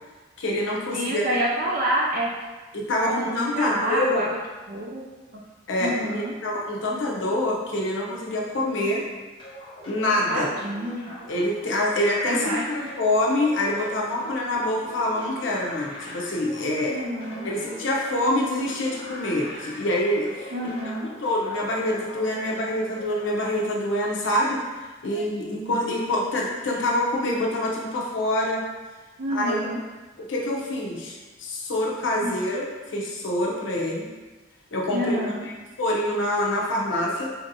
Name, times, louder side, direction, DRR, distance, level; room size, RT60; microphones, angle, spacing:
voice 1, 0.4-1.3 2.7-4.2 5.7-9.0 9.9-10.5 11.3-16.9 17.4-20.5 21.2-24.6 25.0-28.6 29.3-29.6 30.3-34.1 34.7-35.2 35.4-35.5 35.8-37.3, left 1 dB, 70° left, -3 dB, 0.7 m, -26 dB
voice 2, 0.9-2.3 3.0-4.3 4.7-5.0 5.3-5.4 5.8-6.3 10.3-11.0 12.3-12.9 16.9-17.5 20.5-21.1 25.1-25.8 29.2-29.8 32.2-32.4 34.9-35.5, equal, 50° right, -3 dB, 0.4 m, -28 dB
sound 1, 9.4-23.3, equal, 25° left, 0.6 m, -42 dB
4.3 x 2.7 x 2.6 m, 1.3 s
head